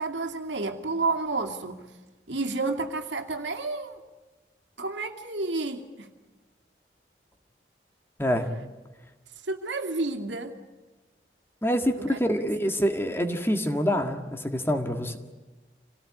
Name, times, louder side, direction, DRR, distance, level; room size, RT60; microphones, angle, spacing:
voice 1, 0.0-1.9 2.3-4.0 4.8-6.1 8.3-8.4 9.4-10.6 12.1-12.2, right 3 dB, 85° right, 3 dB, 2.5 m, -30 dB
voice 2, 11.6-15.2, equal, 15° left, 6 dB, 1.7 m, -26 dB
27.5 x 18.0 x 9.9 m, 1.2 s
head